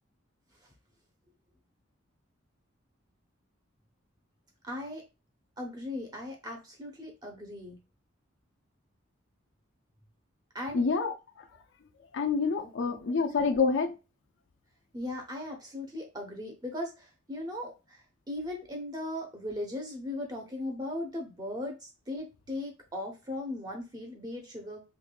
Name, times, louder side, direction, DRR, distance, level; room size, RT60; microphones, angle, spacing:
voice 1, 4.6-5.0 5.6-7.8 10.5-10.9 12.6-13.0 13.3-13.4 14.9-24.8, left 1 dB, 20° right, 0.9 m, -38 dB
voice 2, 10.7-11.1 12.1-13.9, left 4 dB, 65° left, 0.4 m, -27 dB
3.5 x 3.2 x 2.3 m
head